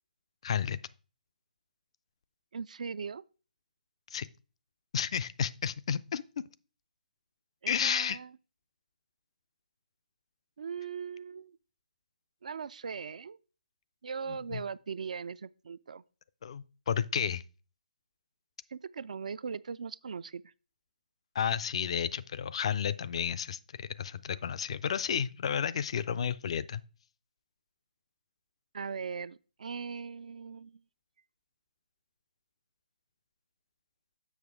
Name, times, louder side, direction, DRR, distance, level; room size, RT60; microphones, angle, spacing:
voice 1, 0.4-0.8 4.1-4.3 4.9-6.4 7.7-8.2 14.3-14.6 16.4-17.4 21.3-26.8, left 8 dB, 40° left, 0.4 m, -32 dB
voice 2, 2.5-3.2 7.6-8.3 10.6-11.6 12.4-13.4 14.0-16.0 18.7-20.5 28.7-30.8, right 6 dB, 50° right, 0.3 m, -39 dB
7.2 x 6.0 x 3.5 m
figure-of-eight pair, 140°, 5 cm